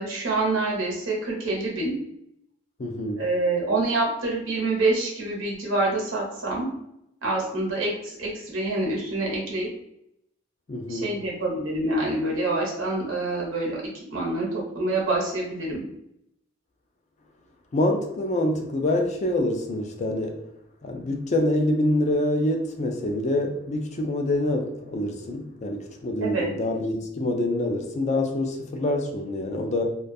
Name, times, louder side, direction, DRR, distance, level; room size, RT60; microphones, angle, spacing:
voice 1, 0.0-1.9 3.2-6.7 7.2-9.7 10.9-13.8 14.1-15.8 26.2-26.5, right 2 dB, 70° right, 0.8 m, -26 dB
voice 2, 2.8-3.2 10.7-11.1 17.7-20.4 20.8-29.9, left 1 dB, 35° left, 0.4 m, -26 dB
2.3 x 2.2 x 2.6 m
head